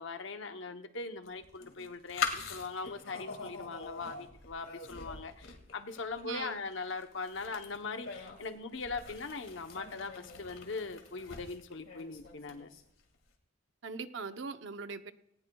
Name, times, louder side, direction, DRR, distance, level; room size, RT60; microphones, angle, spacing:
voice 1, 0.0-12.7, left 4 dB, 70° left, 7 dB, 0.9 m, -40 dB
sound 1, 1.3-13.0, left 5 dB, 90° left, 2.2 m, -43 dB
voice 2, 6.2-6.6 13.8-15.1, right 4 dB, 65° right, 9 dB, 0.8 m, -40 dB
19.0 x 18.5 x 2.3 m, 0.78 s
head